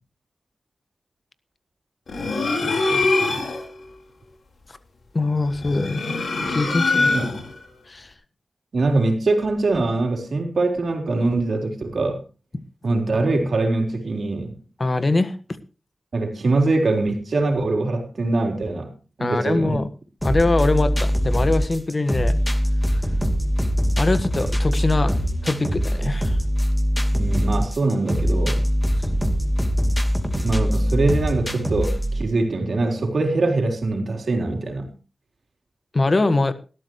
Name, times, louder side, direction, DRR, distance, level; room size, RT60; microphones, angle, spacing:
sound 1, 2.1-3.7 5.5-7.6, left 3 dB, 80° left, 4.3 m, -23 dB
voice 1, 2.6-3.5 7.1-7.3 8.7-12.2 12.8-14.6 16.1-18.9 19.2-19.8 27.1-28.6 30.4-34.9, right 2 dB, 70° right, 4 dB, 3.9 m, -23 dB
voice 2, 5.1-6.0 6.5-7.1 7.9-8.1 14.8-15.4 19.2-19.9 20.2-22.4 24.0-26.4 35.9-36.5, left 2 dB, 45° left, 12 dB, 1.5 m, -22 dB
sound 2, 20.2-32.2, equal, 10° left, 2.7 m, -22 dB
19.5 x 13.0 x 3.1 m, 0.33 s
cardioid pair, 55°, 0 cm